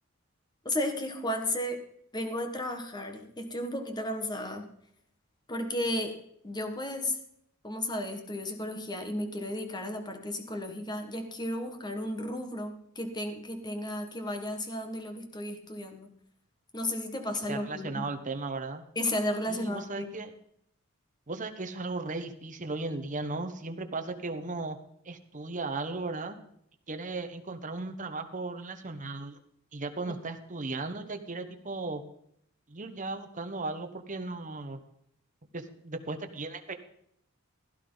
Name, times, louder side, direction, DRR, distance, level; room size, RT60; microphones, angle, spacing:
voice 1, 0.6-1.8 2.1-4.7 5.5-6.2 6.4-7.2 7.6-16.1 16.7-18.1 18.9-20.1 30.1-30.2, left 1 dB, 20° left, 5 dB, 1.6 m, -34 dB
voice 2, 17.5-18.8 19.5-20.3 21.3-24.8 25.0-26.4 26.9-29.4 29.7-32.0 32.7-34.8 35.5-36.7, right 3 dB, 35° right, 7 dB, 1.2 m, -36 dB
16.0 x 11.5 x 4.0 m, 0.70 s
head